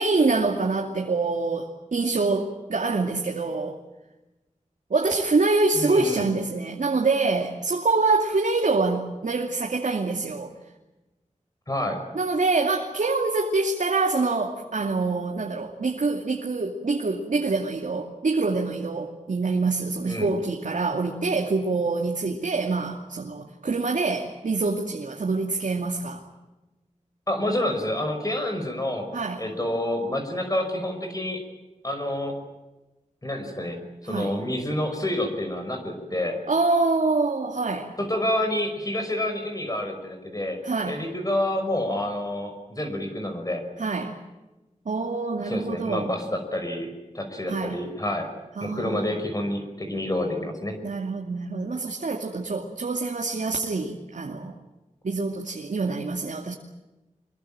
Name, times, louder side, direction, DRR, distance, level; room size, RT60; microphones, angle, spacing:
voice 1, 0.0-3.8 4.9-10.5 12.1-26.2 29.1-29.4 34.0-34.4 36.5-37.9 40.6-41.0 43.8-44.2 44.9-46.1 47.5-47.8 48.6-49.1 50.8-54.5 55.0-56.5, right 3 dB, 80° right, 1 dB, 2.6 m, -25 dB
voice 2, 5.7-6.3 11.7-12.0 20.0-20.3 27.3-29.1 29.4-31.4 31.8-32.3 33.2-36.4 38.0-40.6 40.8-43.6 45.4-48.3 48.6-50.8, left 1 dB, 30° left, 4 dB, 5.6 m, -28 dB
25.5 x 22.5 x 8.8 m, 1.1 s
wide cardioid pair, 75°, 13 cm